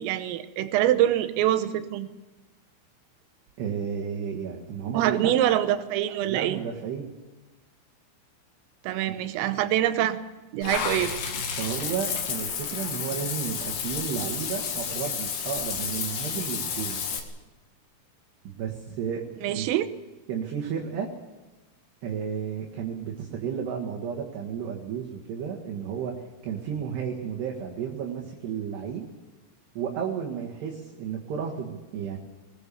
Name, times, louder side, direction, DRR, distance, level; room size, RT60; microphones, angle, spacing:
voice 1, 0.0-2.1 5.0-6.6 8.9-10.2 10.5-11.1 19.4-19.9, right 12 dB, 80° right, 10 dB, 3.6 m, -24 dB
voice 2, 3.6-5.3 6.2-7.1 11.6-17.0 18.5-19.7 20.3-21.1 22.0-26.1 26.4-29.0 29.8-32.2, right 7 dB, 60° right, -2 dB, 3.6 m, -32 dB
Water / Bathtub (filling or washing), 10.6-17.2, left 7 dB, 60° left, 3.4 m, -31 dB
20.5 x 20.5 x 7.0 m, 1.1 s
omnidirectional pair, 5.9 m